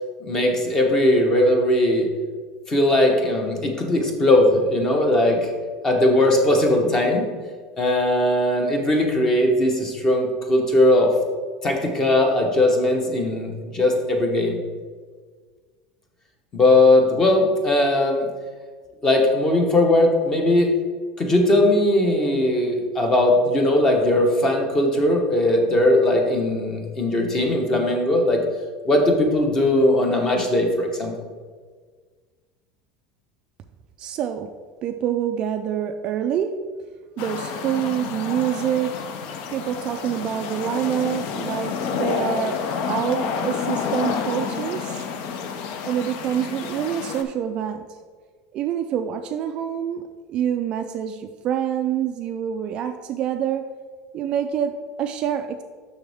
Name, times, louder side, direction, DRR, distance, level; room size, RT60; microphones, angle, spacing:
voice 1, 0.2-2.1 2.7-5.5 5.8-7.3 7.8-11.1 11.6-14.6 16.5-18.3 19.0-20.7 21.2-28.4 28.8-31.1, left 1 dB, 20° left, 2 dB, 1.0 m, -19 dB
voice 2, 34.0-34.5 34.8-36.6 37.2-39.0 39.5-42.6 42.9-45.0 45.8-47.8 48.5-53.7 54.1-55.6, right 9 dB, 35° right, 6 dB, 0.3 m, -26 dB
sound 1, 37.2-47.2, left 6 dB, 50° left, 0.6 m, -29 dB
6.7 x 6.3 x 3.5 m, 1.5 s
cardioid pair, 170°, 3 cm